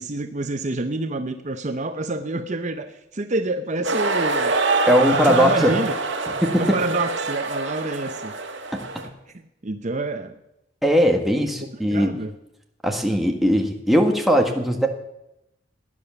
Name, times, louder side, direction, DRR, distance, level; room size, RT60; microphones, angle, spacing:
voice 1, 0.0-4.5 5.3-6.0 6.6-8.3 9.3-10.4 11.9-12.3, right 2 dB, 40° right, 7 dB, 0.8 m, -27 dB
sound 1, 3.8-9.1, right 3 dB, 70° right, 1.9 m, -25 dB
voice 2, 4.9-5.8 6.4-6.7 8.7-9.1 10.8-12.1 12.8-14.9, equal, ahead, 2 dB, 1.6 m, -19 dB
16.0 x 10.0 x 7.1 m, 0.86 s
head